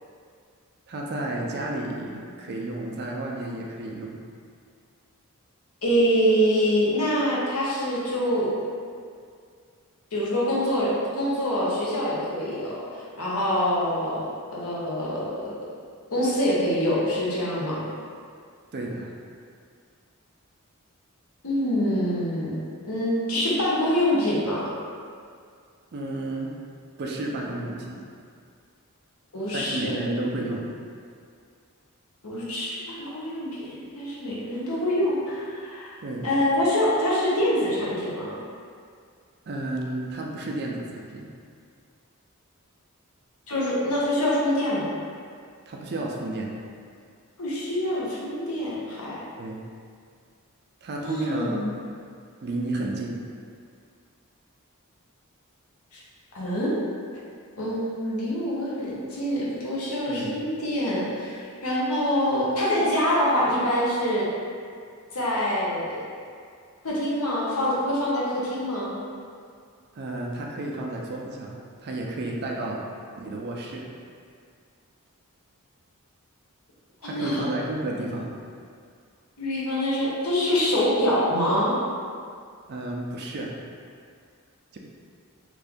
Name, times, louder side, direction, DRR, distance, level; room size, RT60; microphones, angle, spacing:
voice 1, 0.9-4.2 18.7-19.1 25.9-26.5 27.0-28.0 29.5-30.7 36.0-36.3 39.5-41.3 45.7-46.5 49.4-49.6 50.8-51.7 52.4-53.2 60.1-60.4 70.0-72.8 73.2-73.9 77.0-78.3 82.7-83.5 84.7-84.8, right 2 dB, 50° right, -1 dB, 0.4 m, -32 dB
voice 2, 5.8-8.5 10.1-14.3 14.5-15.5 16.1-17.8 21.4-22.5 22.8-24.7 29.3-30.0 32.2-35.9 36.2-38.4 43.5-44.9 47.4-49.2 51.0-51.7 55.9-56.0 56.3-56.7 57.6-64.3 65.1-66.0 66.8-68.9 77.0-77.5 79.4-81.8, equal, 70° left, -7 dB, 0.9 m, -25 dB
3.1 x 2.5 x 3.5 m, 2.2 s
head